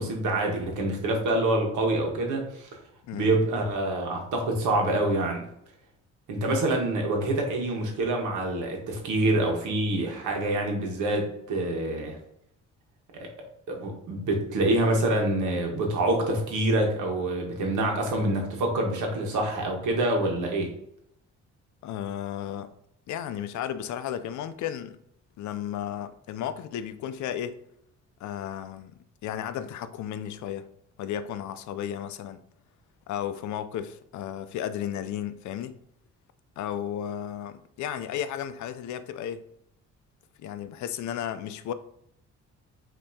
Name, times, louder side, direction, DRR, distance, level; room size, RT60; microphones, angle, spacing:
voice 1, 0.0-2.7 3.1-5.4 6.3-12.2 13.1-13.3 13.7-20.7, right 1 dB, 80° right, 1.2 m, -26 dB
voice 2, 21.8-22.7 23.1-25.0 25.4-27.6 28.2-28.9 29.2-30.7 31.0-32.4 33.1-35.8 36.6-39.4 40.4-41.7, left 10 dB, 70° left, 0.5 m, -34 dB
5.5 x 2.8 x 2.7 m
cardioid pair, 90°, 30 cm